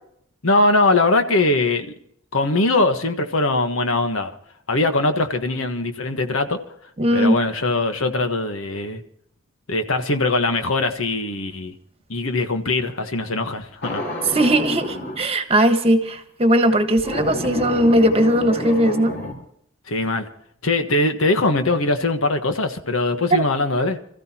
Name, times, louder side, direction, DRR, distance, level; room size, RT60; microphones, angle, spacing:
voice 1, 0.4-1.9 2.3-4.3 4.7-6.6 7.1-9.0 9.7-11.7 12.1-14.0 19.9-20.3 20.6-24.0, left 2 dB, 85° left, 1.4 m, -21 dB
voice 2, 7.0-7.4 14.3-19.2 23.3-23.5, right 1 dB, 30° right, 1.5 m, -18 dB
sound 1, 13.8-15.2 17.0-19.3, left 1 dB, 55° left, 4.0 m, -29 dB
27.5 x 14.5 x 3.0 m
head